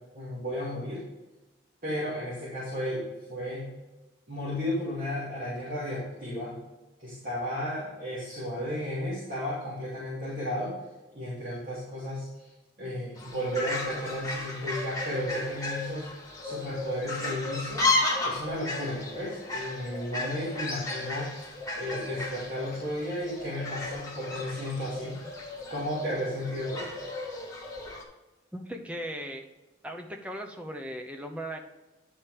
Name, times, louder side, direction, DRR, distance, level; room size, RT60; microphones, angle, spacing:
voice 1, 0.1-1.0 1.8-3.7 4.3-6.6 7.0-10.7 11.1-12.5 12.8-16.1 16.4-17.9 18.2-21.3 21.7-25.2 25.7-26.9, equal, 45° right, -9 dB, 2.6 m, -33 dB
Fowl, 13.2-28.0, left 2 dB, 15° left, 1.3 m, -34 dB
voice 2, 28.5-29.4 29.8-31.6, equal, 5° right, 2 dB, 0.8 m, -37 dB
10.0 x 4.4 x 5.0 m, 1.1 s
head